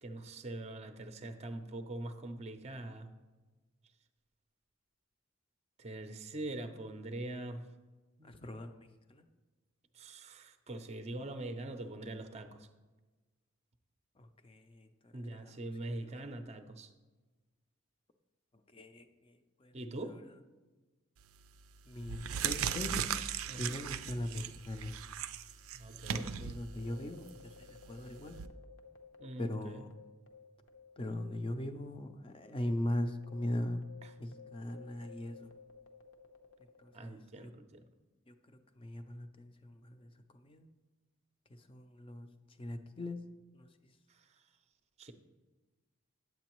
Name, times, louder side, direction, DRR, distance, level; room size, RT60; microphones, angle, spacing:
voice 1, 0.0-3.1 5.8-7.7 8.2-8.4 9.9-12.7 15.1-16.9 19.7-20.2 23.5-23.8 25.7-26.3 29.2-29.8 36.9-37.8 44.1-44.4 45.0-45.1, right 2 dB, 30° right, 8 dB, 0.5 m, -43 dB
voice 2, 8.2-9.3 14.2-16.2 18.7-19.8 20.0-20.2 21.9-23.1 23.6-24.9 26.1-28.4 29.4-30.0 31.0-33.9 34.2-35.5 36.8-37.5 38.3-40.7 41.5-42.3 42.6-43.2 43.5-43.9, left 1 dB, 25° left, 8 dB, 0.5 m, -40 dB
sound 1, 21.2-21.5 22.0-28.5, right 8 dB, 85° right, 0.4 m, -38 dB
sound 2, 26.7-31.5 31.7-31.9 32.5-37.3, left 5 dB, 65° left, 0.7 m, -56 dB
9.2 x 7.8 x 3.0 m, 1.2 s
head